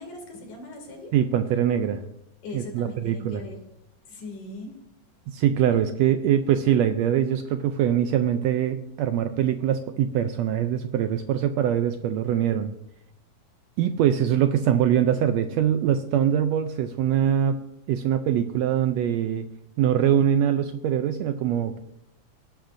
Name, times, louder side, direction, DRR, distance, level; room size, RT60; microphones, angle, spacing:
voice 1, 0.0-1.1 2.4-3.6 4.1-4.8, left 2 dB, 75° left, 2 dB, 4.0 m, -39 dB
voice 2, 1.1-2.0 2.5-3.4 5.3-12.7 13.8-17.6 17.9-19.5 19.8-21.8, right 9 dB, 80° right, 8 dB, 1.6 m, -23 dB
18.0 x 10.5 x 2.6 m, 0.80 s
omnidirectional pair, 3.5 m